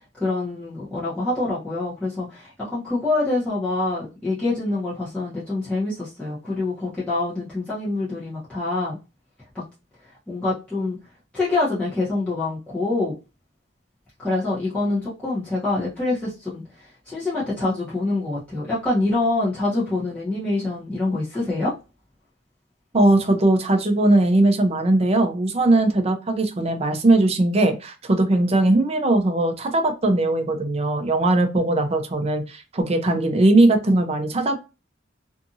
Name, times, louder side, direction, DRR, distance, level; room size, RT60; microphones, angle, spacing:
voice 1, 0.2-9.0 10.3-11.0 11.3-13.1 14.2-16.6 17.1-21.7, left 2 dB, 5° left, -10 dB, 0.9 m, -25 dB
voice 2, 22.9-34.6, right 2 dB, 35° right, 5 dB, 0.5 m, -19 dB
2.7 x 2.5 x 2.6 m, 0.29 s
head